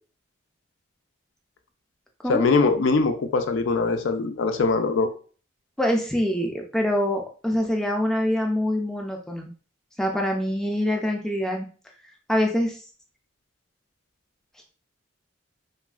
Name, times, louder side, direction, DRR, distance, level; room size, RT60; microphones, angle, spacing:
voice 1, 2.3-5.1, left 3 dB, 75° left, 7 dB, 0.4 m, -22 dB
voice 2, 5.8-9.5 10.0-11.7 12.3-12.8, equal, 5° left, 1 dB, 0.3 m, -25 dB
3.1 x 2.4 x 2.3 m, 0.40 s
head